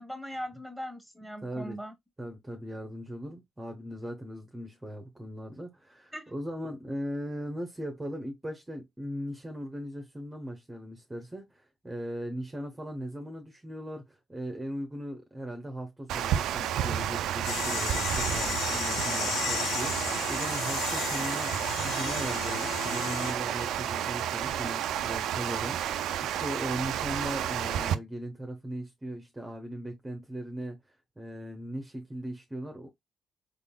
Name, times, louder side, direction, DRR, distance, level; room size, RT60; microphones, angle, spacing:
voice 1, 0.0-1.9 6.1-6.2, equal, 5° left, 1.4 m, -39 dB
voice 2, 1.4-1.8 2.2-30.8 31.2-32.9, equal, 15° right, 0.8 m, -38 dB
Water, 16.1-28.0, right 10 dB, 85° right, 0.4 m, -31 dB
sound 1, 17.4-23.3, left 9 dB, 80° left, 0.4 m, -34 dB
3.8 x 3.6 x 2.2 m
cardioid pair, 90°, 0 cm